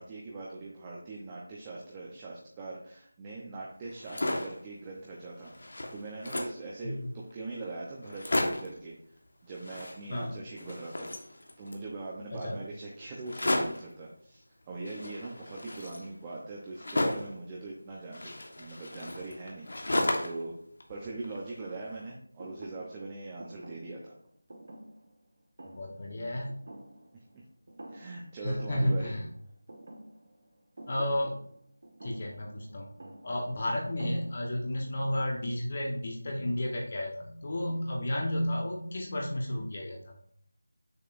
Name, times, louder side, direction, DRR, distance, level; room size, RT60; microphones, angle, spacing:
voice 1, 0.0-11.1 11.6-20.6 20.9-24.1 27.1-27.2 27.9-29.1, right 3 dB, 15° right, -3 dB, 0.7 m, -42 dB
sound 1, 3.9-4.6 5.1-5.2 5.4-6.7 7.3-7.4 7.6-7.7 8.0-8.8 9.5-10.3 10.6-11.9 13.2-13.9 14.9-17.4 18.1-20.5 20.8-21.7, left 1 dB, 65° left, 1.3 m, -33 dB
Thump thud, 22.4-27.4 27.7-28.3 28.6-34.7, right 1 dB, 50° right, 1.5 m, -50 dB
voice 2, 25.6-26.6 28.4-29.2 30.9-31.4 32.0-32.9 33.2-40.1, left 1 dB, 40° left, 0 dB, 1.0 m, -32 dB
6.7 x 6.6 x 2.5 m, 0.65 s
figure-of-eight pair, 170°, 0 cm